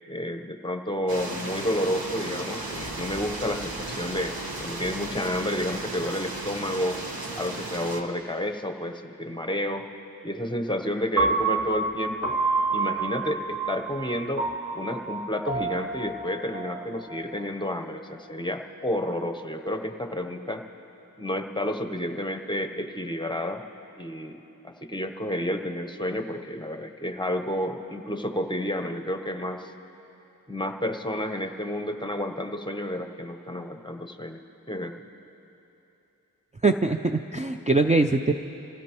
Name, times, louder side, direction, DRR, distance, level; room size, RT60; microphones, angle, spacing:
voice 1, 0.1-7.0 7.3-9.9 10.2-12.3 12.7-14.5 14.7-20.6 21.2-23.6 24.0-29.7 30.5-34.4 34.7-35.0, left 1 dB, 15° left, 5 dB, 0.9 m, -30 dB
sound 1, 1.1-8.0, right 2 dB, 75° right, 1.3 m, -35 dB
Piano, 11.2-17.3, right 4 dB, 45° right, 2.5 m, -28 dB
voice 2, 36.6-38.3, right 3 dB, 20° right, 5 dB, 0.4 m, -22 dB
27.0 x 16.0 x 3.0 m, 3.0 s
wide cardioid pair, 60°, 36 cm